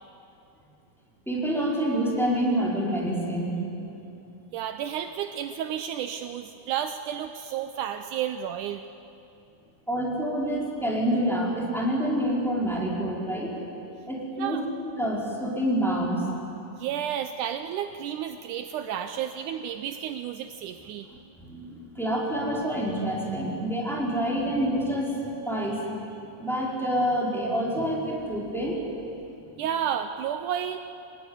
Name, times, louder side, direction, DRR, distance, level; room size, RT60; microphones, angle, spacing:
voice 1, 1.3-3.6 9.9-13.5 14.1-16.2 21.1-25.2 25.4-25.8 26.4-28.8 29.5-29.6, equal, ahead, -3 dB, 4.4 m, -27 dB
voice 2, 4.5-8.8 14.4-14.7 16.8-21.1 29.6-30.8, right 9 dB, 75° right, 9 dB, 2.1 m, -31 dB
25.5 x 20.0 x 9.7 m, 2.8 s
omnidirectional pair, 3.7 m